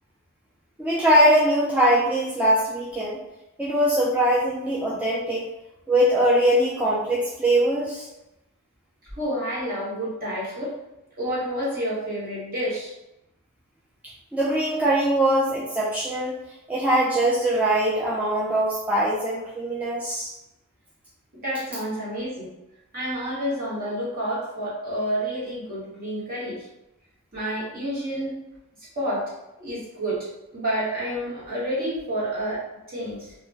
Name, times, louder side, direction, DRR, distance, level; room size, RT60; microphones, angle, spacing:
voice 1, 0.8-3.2 3.6-5.5 5.9-8.1 14.3-16.4 16.7-20.3, right 1 dB, 5° right, -7 dB, 0.3 m, -22 dB
voice 2, 9.2-10.7 11.2-12.9 21.4-22.5 22.9-26.7 27.3-28.3 28.9-29.3 29.6-33.3, equal, 45° right, -8 dB, 1.1 m, -29 dB
2.3 x 2.1 x 3.2 m, 0.90 s
head